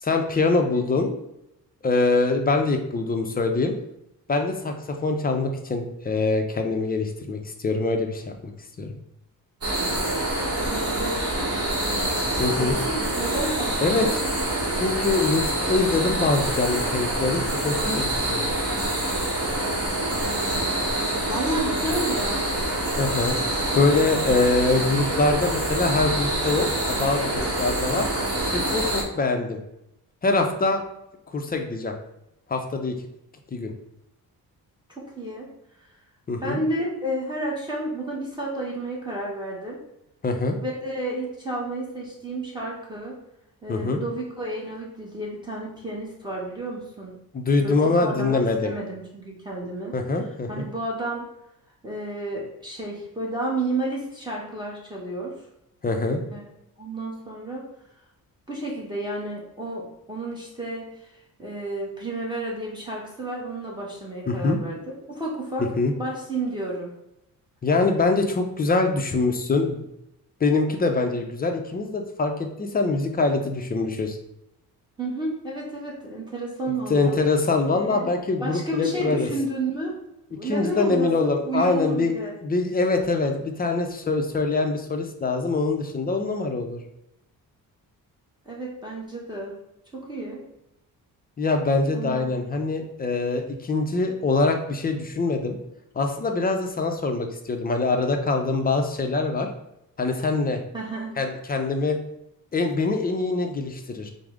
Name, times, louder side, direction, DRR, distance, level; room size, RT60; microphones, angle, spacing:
voice 1, 0.0-1.2 1.8-3.7 4.3-8.5 8.8-8.9 12.4-12.8 13.8-14.1 14.7-18.4 23.0-23.4 23.7-28.1 28.5-29.6 30.2-30.8 31.3-31.9 32.5-32.9 33.5-33.7 36.3-36.6 40.2-40.5 43.7-44.0 47.3-48.7 49.9-50.7 55.8-56.2 64.3-64.6 65.8-65.9 67.6-69.9 70.4-74.2 76.9-79.3 80.4-82.1 82.4-86.8 91.4-95.6 96.0-99.5 100.0-100.6 101.2-102.0 102.5-104.1, left 3 dB, 25° left, 4 dB, 0.5 m, -24 dB
sound 1, 9.6-29.0, right 1 dB, 40° right, 1.1 m, -26 dB
voice 2, 10.6-12.1 12.5-14.1 20.2-20.7 21.3-22.5 34.9-35.5 36.4-39.8 40.6-43.2 43.6-47.2 47.6-50.0 50.5-51.3 51.8-55.3 56.3-56.4 56.8-57.6 58.5-61.1 61.4-64.8 65.1-65.7 66.0-66.9 75.0-77.2 77.7-78.1 78.4-79.9 80.3-82.4 88.4-89.6 89.9-90.4 91.9-92.4 100.7-101.2, right 1 dB, 10° right, -4 dB, 0.9 m, -31 dB
4.8 x 2.0 x 3.5 m, 0.84 s
cardioid pair, 105°, 36 cm